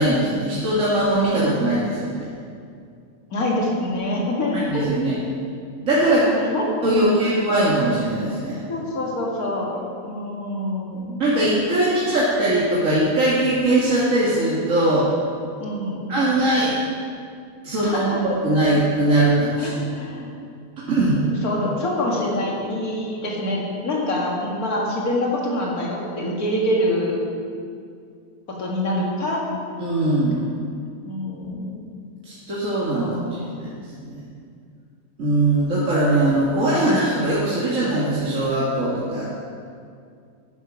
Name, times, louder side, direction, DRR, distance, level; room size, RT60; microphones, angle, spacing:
voice 1, 0.0-2.3 4.5-5.2 5.8-6.3 6.8-8.6 11.2-15.1 16.1-16.8 17.6-19.7 20.9-21.2 29.8-30.5 32.2-33.2 33.6-33.7 34.0-34.2 35.2-39.3, right 1 dB, 60° right, -8 dB, 2.2 m, -20 dB
voice 2, 3.3-4.9 6.2-7.5 8.7-9.7 10.0-11.2 15.6-16.1 17.8-18.2 19.6-20.3 21.4-27.2 28.6-29.4 30.0-30.2 31.0-31.8 33.0-33.6, left 1 dB, 85° left, -3 dB, 2.6 m, -26 dB
10.5 x 10.0 x 6.1 m, 2.3 s
omnidirectional pair, 1.5 m